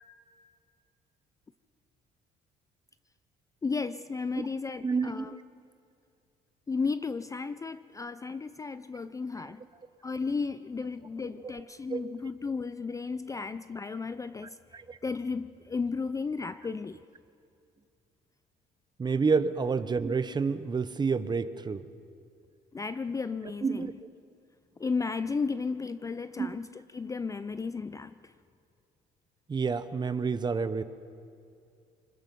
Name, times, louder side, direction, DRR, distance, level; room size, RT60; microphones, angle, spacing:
voice 1, 3.6-5.4 6.7-9.6 10.0-14.6 15.0-17.0 19.3-19.4 22.7-23.9 24.8-28.3, left 4 dB, 20° left, 0.4 m, -34 dB
voice 2, 4.8-5.3 11.9-12.0 14.7-15.0 19.0-21.8 23.6-23.9 26.4-26.5 29.5-30.8, right 5 dB, 25° right, 0.8 m, -29 dB
25.5 x 20.5 x 5.3 m
cardioid pair, 110°, 17 cm